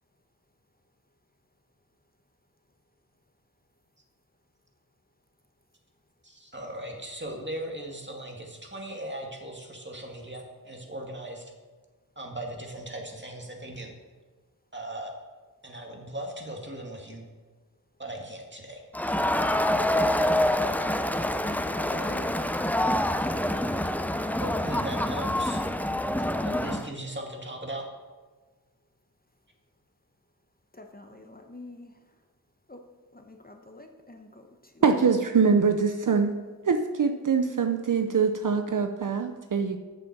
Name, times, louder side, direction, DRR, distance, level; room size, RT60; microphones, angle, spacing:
voice 1, 6.2-11.5 12.2-14.0 14.7-15.1 15.6-17.2 18.0-18.8 24.4-25.6 26.4-27.8, right 1 dB, 30° right, 1 dB, 2.2 m, -38 dB
Crowd, 18.9-26.9, left 1 dB, 5° left, 0.5 m, -26 dB
voice 2, 21.7-22.4 30.7-32.0 32.7-32.8 33.1-34.8, left 2 dB, 25° left, 4 dB, 1.1 m, -45 dB
voice 3, 34.8-36.3 36.7-39.8, right 5 dB, 55° right, 6 dB, 0.7 m, -23 dB
8.2 x 7.0 x 6.1 m, 1.3 s
cardioid pair, 40°, 37 cm